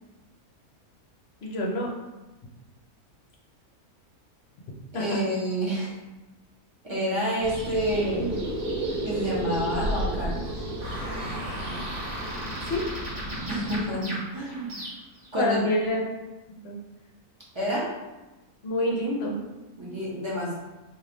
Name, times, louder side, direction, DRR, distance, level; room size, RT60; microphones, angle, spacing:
voice 1, 1.4-1.9 4.9-5.2 12.7-12.8 15.4-16.1 16.5-16.8 18.6-19.4, left 1 dB, 55° left, -2 dB, 0.8 m, -27 dB
voice 2, 4.9-5.9 6.8-8.4 9.0-10.5 13.5-14.8 15.3-15.6 17.5-17.9 19.8-20.5, equal, 20° right, -7 dB, 1.0 m, -28 dB
sound 1, 7.4-13.8, equal, 65° right, 1.3 m, -35 dB
sound 2, 7.9-13.1, right 2 dB, 85° right, 1.1 m, -34 dB
sound 3, 10.8-15.3, right 1 dB, 40° right, 1.5 m, -37 dB
3.2 x 2.7 x 3.9 m, 1.1 s
omnidirectional pair, 1.6 m